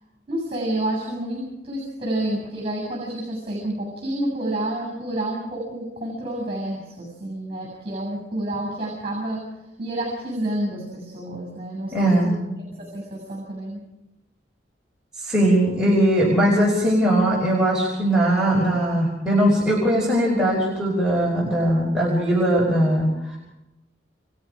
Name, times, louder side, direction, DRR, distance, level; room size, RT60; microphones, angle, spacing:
voice 1, 0.3-9.4 9.8-12.4 12.7-13.8, right 1 dB, 30° right, 0 dB, 7.3 m, -29 dB
voice 2, 11.9-12.4 15.2-23.4, right 1 dB, 5° right, -6 dB, 5.6 m, -20 dB
29.5 x 29.0 x 5.1 m, 0.96 s
head